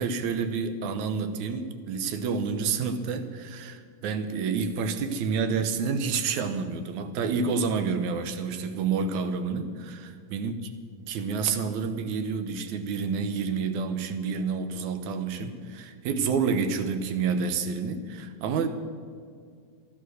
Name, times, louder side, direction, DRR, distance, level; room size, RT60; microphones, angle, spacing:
voice 1, 0.0-10.5 11.1-18.7, right 5 dB, 70° right, 9 dB, 2.0 m, -29 dB
14.0 x 11.5 x 6.3 m, 2.2 s
omnidirectional pair, 4.1 m